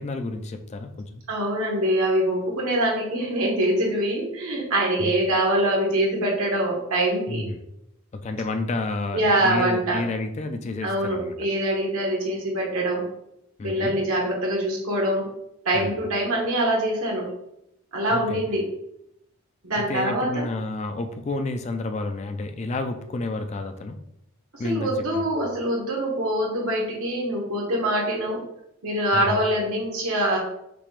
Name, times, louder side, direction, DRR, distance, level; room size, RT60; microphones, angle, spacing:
voice 1, 0.0-1.2 5.0-5.1 7.3-7.6 8.1-11.3 13.6-14.0 15.7-16.0 18.1-18.4 19.8-24.0 24.6-25.2 29.1-29.4, left 2 dB, 30° left, 7 dB, 0.3 m, -30 dB
voice 2, 1.3-7.4 9.1-10.0 10.8-13.1 13.6-15.3 15.6-17.3 17.9-18.6 19.6-20.5 24.5-28.4 28.8-30.4, right 1 dB, 80° right, -2 dB, 1.4 m, -24 dB
5.9 x 3.3 x 2.5 m, 0.80 s
head